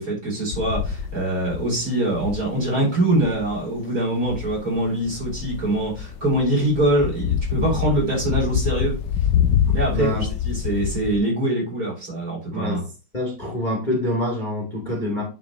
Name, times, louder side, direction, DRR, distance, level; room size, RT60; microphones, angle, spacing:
voice 1, 0.0-9.0 9.7-12.8, right 1 dB, 40° right, -5 dB, 4.9 m, -23 dB
sound 1, 0.5-11.2, left 9 dB, 70° left, 1.1 m, -26 dB
voice 2, 9.9-10.2 12.5-12.8 13.1-15.2, left 1 dB, 20° left, -2 dB, 2.4 m, -26 dB
9.3 x 4.6 x 3.1 m, 0.32 s
omnidirectional pair, 2.3 m